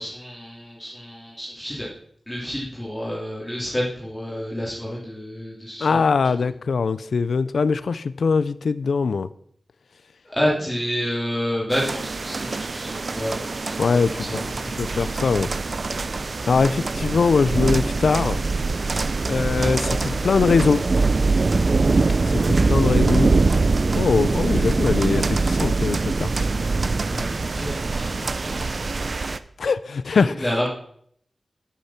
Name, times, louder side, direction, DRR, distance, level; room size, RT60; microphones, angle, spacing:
voice 1, 0.0-1.9 2.3-6.0 10.3-15.0 27.1-28.7 30.1-30.7, equal, 10° left, -6 dB, 3.1 m, -29 dB
voice 2, 5.8-9.3 13.8-14.3 14.8-15.5 16.5-18.4 19.3-20.8 22.2-23.3 23.9-26.3 29.6-30.5, left 5 dB, 90° left, 15 dB, 0.5 m, -22 dB
sound 1, 11.7-29.4, right 3 dB, 50° right, 0.6 m, -23 dB
10.0 x 8.5 x 5.9 m, 0.65 s
wide cardioid pair, 100°, 0 cm